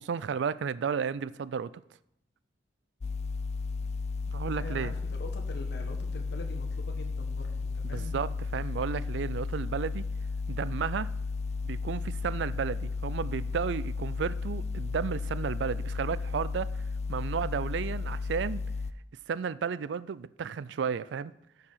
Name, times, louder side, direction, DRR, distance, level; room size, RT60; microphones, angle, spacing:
voice 1, 0.0-1.7 4.3-4.9 7.8-10.0 10.5-11.1 11.6-16.7 17.1-18.6 19.3-21.3, right 6 dB, 70° right, 0.4 m, -33 dB
sound 1, 3.0-18.9, left 4 dB, 35° left, 0.3 m, -34 dB
voice 2, 4.6-8.1, left 1 dB, 60° left, 1.4 m, -44 dB
13.5 x 4.6 x 5.6 m
head